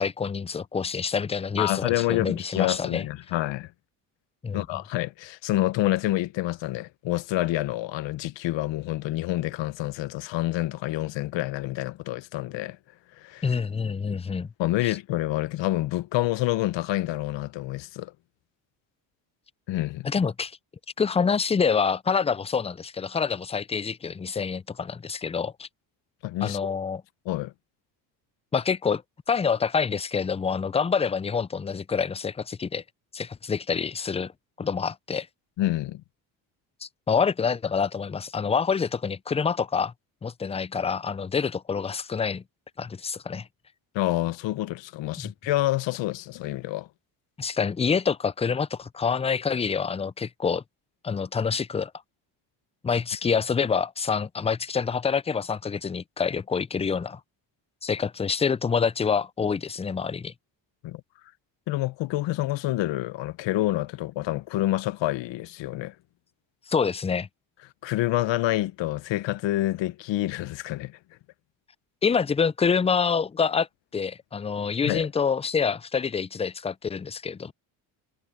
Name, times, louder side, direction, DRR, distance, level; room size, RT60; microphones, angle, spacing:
voice 1, 0.0-3.0 4.4-4.6 13.4-14.5 14.8-15.0 20.0-20.6 21.0-25.7 26.4-27.0 28.5-29.0 29.3-32.8 33.1-34.3 34.6-35.3 36.8-39.9 40.2-42.4 42.8-43.5 45.2-45.3 47.4-50.6 51.0-51.9 52.8-57.2 57.8-60.3 66.7-67.3 72.0-73.7 73.9-77.5, left 6 dB, 15° left, 0.4 m, -26 dB
voice 2, 1.6-3.7 4.5-12.8 13.2-13.4 14.6-18.1 19.7-20.1 26.2-26.6 27.2-27.5 35.6-36.0 43.9-46.9 60.8-61.0 61.7-65.9 67.8-71.0 74.8-75.1, left 16 dB, 65° left, 0.9 m, -27 dB
supercardioid pair, 85°, 47 cm